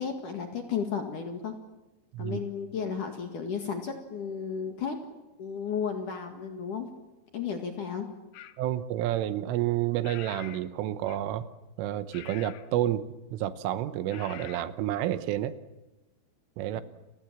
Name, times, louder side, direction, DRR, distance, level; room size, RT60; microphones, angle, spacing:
voice 1, 0.0-1.5 2.2-5.0 5.4-6.9 7.3-8.1 16.7-16.8, left 6 dB, 55° left, 4 dB, 2.7 m, -33 dB
sound 1, 8.3-8.6 10.0-10.7 11.0-11.4 12.1-12.7 14.1-14.7, left 12 dB, 80° left, 2.2 m, -45 dB
voice 2, 8.6-11.5 11.8-13.1 13.3-15.5 16.6-16.8, right 12 dB, 80° right, 12 dB, 3.5 m, -29 dB
30.0 x 22.5 x 7.5 m, 1.0 s
omnidirectional pair, 5.8 m